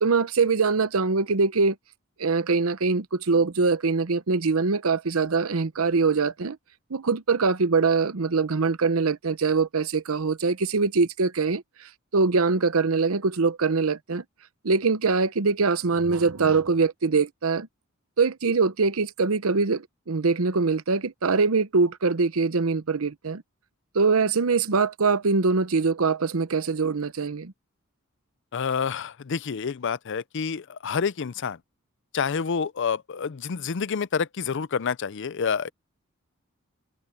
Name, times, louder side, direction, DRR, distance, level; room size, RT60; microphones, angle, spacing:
voice 1, 0.0-1.7 2.2-6.6 6.9-11.6 12.1-14.2 14.6-17.7 18.2-23.4 23.9-27.5, right 4 dB, 90° right, 0.8 m, -23 dB
voice 2, 28.5-31.6 32.1-35.7, left 6 dB, 60° left, 0.5 m, -28 dB
head